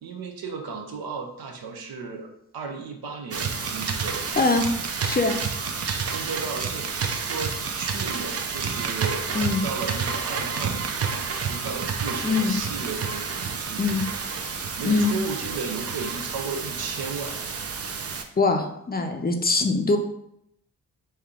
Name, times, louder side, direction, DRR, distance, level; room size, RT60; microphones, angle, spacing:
voice 1, 0.0-2.3 2.5-4.4 5.8-13.9 14.8-17.4, right 4 dB, 70° right, 3 dB, 0.8 m, -35 dB
sound 1, 3.3-18.2, right 5 dB, 40° right, 0.5 m, -30 dB
voice 2, 4.4-4.7 5.0-5.4 9.3-9.6 12.2-12.6 13.8-14.0 14.8-15.1 18.4-20.0, left 3 dB, 25° left, 5 dB, 0.5 m, -22 dB
3.2 x 2.8 x 3.6 m, 0.77 s
cardioid pair, 55°, 37 cm